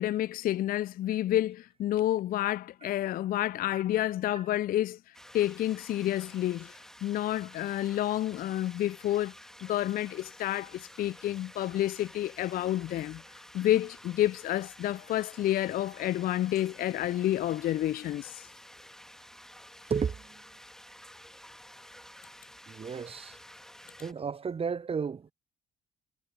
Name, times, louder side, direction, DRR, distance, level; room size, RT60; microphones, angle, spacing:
voice 1, 0.0-5.0 5.3-6.7 7.0-9.3 9.6-13.2 13.5-18.5, left 13 dB, 45° left, 0.4 m, -29 dB
sound 1, 5.1-24.1, equal, ahead, 1.8 m, -51 dB
voice 2, 19.9-20.4 22.7-23.4 24.0-25.3, right 6 dB, 30° right, 0.7 m, -33 dB
figure-of-eight pair, 50°, 21 cm